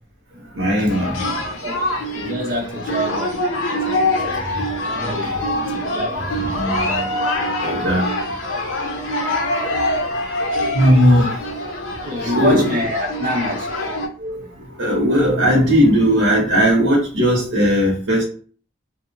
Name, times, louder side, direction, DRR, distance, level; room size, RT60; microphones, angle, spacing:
voice 1, 0.5-1.2 4.3-4.6 5.3-5.5 6.5-7.1 7.4-8.1 10.7-11.3 12.2-12.7 13.7-13.9 14.2-18.2, equal, 85° right, -3 dB, 0.7 m, -18 dB
sound 1, 0.9-14.1, left 1 dB, 90° left, 0.6 m, -24 dB
voice 2, 1.6-3.4 3.7-5.4 5.7-6.6 12.0-13.7, equal, 45° right, 0 dB, 0.7 m, -27 dB
2.7 x 2.0 x 2.5 m, 0.41 s
head